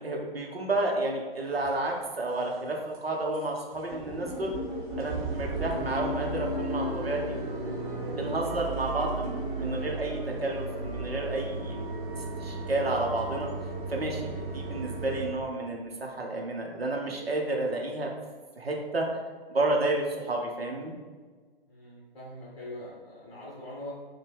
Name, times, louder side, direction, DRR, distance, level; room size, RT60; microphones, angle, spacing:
voice 1, 0.0-4.5 5.0-7.4 8.2-11.8 12.4-13.5 13.9-18.1 18.6-19.2 19.5-20.9, right 2 dB, 80° right, 0 dB, 0.7 m, -31 dB
sound 1, 1.6-1.7 2.2-2.6 2.9-3.0 3.3-3.5 3.7-15.3, right 1 dB, 35° right, 1.0 m, -34 dB
voice 2, 14.4-14.8 21.7-23.9, left 1 dB, 35° left, -5 dB, 1.0 m, -43 dB
4.5 x 2.2 x 3.3 m, 1.5 s
figure-of-eight pair, 130°, 30 cm